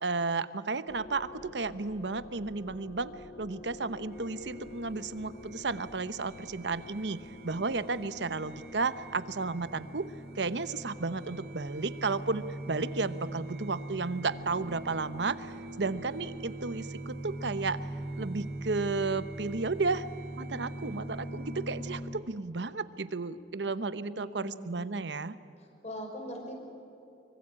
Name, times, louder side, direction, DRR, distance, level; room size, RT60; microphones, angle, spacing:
voice 1, 0.0-3.1 3.4-7.2 7.4-10.1 10.4-15.5 15.8-17.8 18.2-20.0 20.4-25.4, right 3 dB, 80° right, 13 dB, 1.0 m, -33 dB
sound 1, 0.9-10.0, left 2 dB, 75° left, 3.4 m, -50 dB
The Cymbal in My Life, 4.1-22.0, right 1 dB, 60° right, 3.9 m, -42 dB
voice 2, 24.1-24.8 25.8-26.5, equal, 40° left, 2 dB, 5.7 m, -41 dB
25.0 x 24.0 x 8.8 m, 2.9 s
head